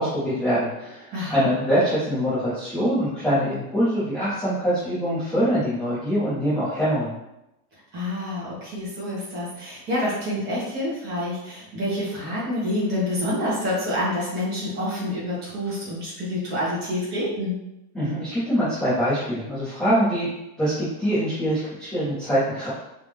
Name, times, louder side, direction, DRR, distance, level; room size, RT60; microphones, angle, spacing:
voice 1, 0.0-7.1 17.9-20.3 20.6-22.7, equal, ahead, -15 dB, 0.4 m, -24 dB
voice 2, 1.1-1.5 7.9-17.6, left 1 dB, 20° right, -8 dB, 1.4 m, -27 dB
3.7 x 3.5 x 3.3 m, 0.89 s
supercardioid pair, 180°, 49 cm